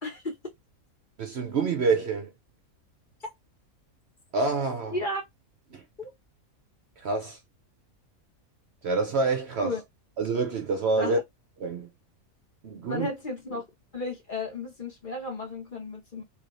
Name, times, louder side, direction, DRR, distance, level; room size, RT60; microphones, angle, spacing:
voice 1, 0.0-0.3 4.9-5.2 6.0-6.1 9.6-9.8 11.0-11.2 12.9-13.6 13.9-16.2, left 2 dB, 35° left, 1.4 m, -33 dB
voice 2, 1.2-2.3 4.3-5.0 5.7-5.8 7.0-7.4 8.8-9.8 10.2-11.2 11.6-11.9 12.6-13.1, right 4 dB, 60° right, 0.8 m, -27 dB
3.4 x 3.2 x 2.5 m
omnidirectional pair, 1.5 m